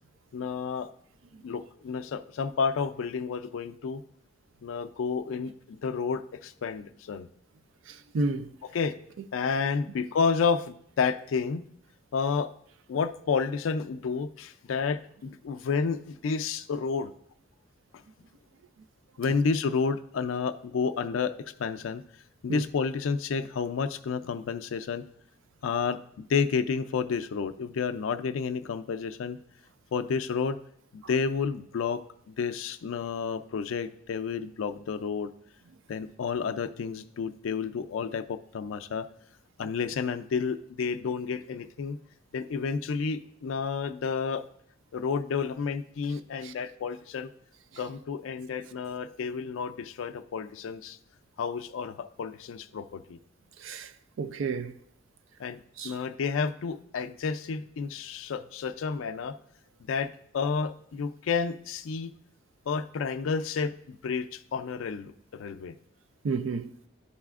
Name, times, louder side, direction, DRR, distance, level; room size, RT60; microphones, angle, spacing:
voice 1, 0.3-0.9 1.4-4.0 4.6-7.3 8.7-8.9 9.3-11.7 12.1-12.5 12.9-17.1 19.2-21.3 21.6-22.0 22.4-25.0 25.6-29.4 29.9-30.6 30.9-32.0 32.3-35.3 35.9-39.1 39.6-42.0 42.3-44.4 44.9-47.3 47.8-51.0 51.4-53.2 55.4-59.3 59.8-62.1 62.7-65.8, left 5 dB, 90° left, 0.4 m, -30 dB
voice 2, 8.1-8.5 22.5-22.6 46.4-46.5 53.6-53.9 54.2-54.7 55.8-55.9 66.2-66.7, right 3 dB, 75° right, 0.4 m, -30 dB
11.0 x 4.1 x 2.4 m
head